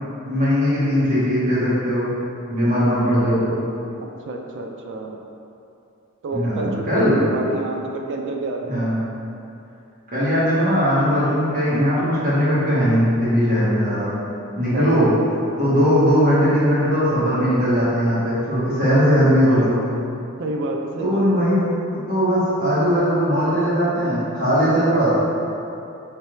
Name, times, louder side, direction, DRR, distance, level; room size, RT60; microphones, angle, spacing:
voice 1, 0.2-2.1 2.5-3.6 6.3-7.2 8.6-9.0 10.1-14.1 14.5-15.1 15.6-19.8 21.0-21.7 21.9-25.2, equal, 40° right, -10 dB, 1.2 m, -19 dB
voice 2, 4.2-5.2 6.2-8.9 14.7-14.9 19.4-19.8 20.4-21.4, right 2 dB, 60° right, 2 dB, 0.4 m, -29 dB
3.3 x 3.2 x 3.1 m, 2.7 s
head